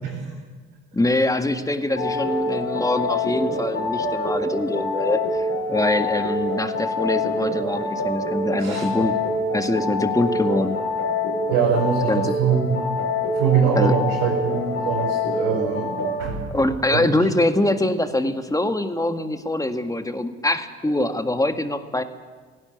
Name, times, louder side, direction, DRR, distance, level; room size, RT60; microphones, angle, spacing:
voice 1, 0.9-9.2 9.5-10.8 12.1-12.4 13.8-13.9 16.5-22.0, left 1 dB, 10° left, 8 dB, 1.9 m, -23 dB
sound 1, 2.0-16.2, left 2 dB, 40° left, 5.4 m, -26 dB
voice 2, 11.5-12.8 13.3-15.9 16.2-16.5 16.9-17.0, right 6 dB, 80° right, -6 dB, 5.0 m, -22 dB
17.5 x 16.5 x 9.4 m, 1.5 s
hypercardioid pair, 55°, 34 cm